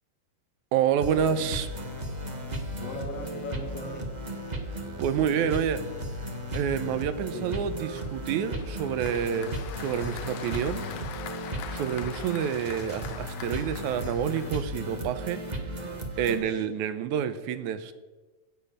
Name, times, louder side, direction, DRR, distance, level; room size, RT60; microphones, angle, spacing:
voice 1, 0.7-1.7 5.0-5.8 6.5-10.9 11.7-15.4 16.2-17.9, right 8 dB, 85° right, 12 dB, 2.3 m, -28 dB
sound 1, 1.0-16.4, right 1 dB, 40° right, 0.6 m, -35 dB
voice 2, 2.8-4.1 7.3-7.7 15.8-16.0 16.2-16.6, left 3 dB, 60° left, 4 dB, 2.6 m, -39 dB
Applause, 8.0-15.1, left 9 dB, 85° left, 2.3 m, -43 dB
16.5 x 7.1 x 6.6 m, 1.2 s
omnidirectional pair, 3.3 m